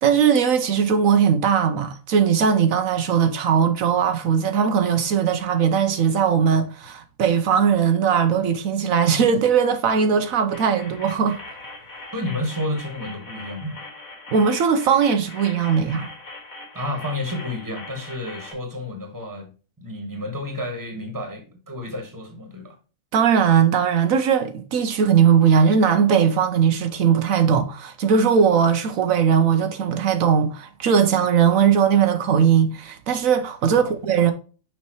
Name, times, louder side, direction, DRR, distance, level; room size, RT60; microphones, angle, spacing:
voice 1, 0.0-11.4 14.3-16.1 23.1-34.3, right 7 dB, 75° right, 1.1 m, -19 dB
sound 1, 10.5-18.5, left 2 dB, 85° left, 2.4 m, -41 dB
voice 2, 12.1-13.8 16.7-19.5 19.8-22.8 33.6-34.0, left 1 dB, 15° right, 1.6 m, -31 dB
6.2 x 5.5 x 3.1 m
omnidirectional pair, 1.4 m